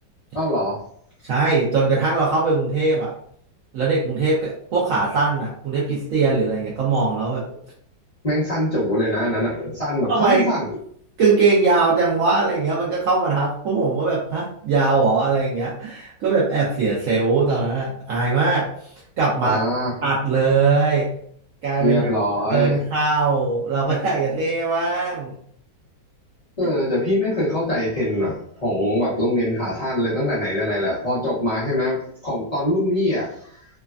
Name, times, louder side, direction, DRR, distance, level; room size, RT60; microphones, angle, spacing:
voice 1, 0.3-0.8 8.2-10.7 19.4-19.9 21.8-22.8 26.6-33.6, left 1 dB, 35° left, -10 dB, 0.6 m, -23 dB
voice 2, 1.2-3.1 3.7-7.4 10.1-10.4 11.2-18.7 19.2-19.6 20.0-21.1 21.6-22.1 22.5-25.4, right 4 dB, 70° right, -5 dB, 0.8 m, -20 dB
3.2 x 2.2 x 2.3 m, 0.64 s
omnidirectional pair, 1.9 m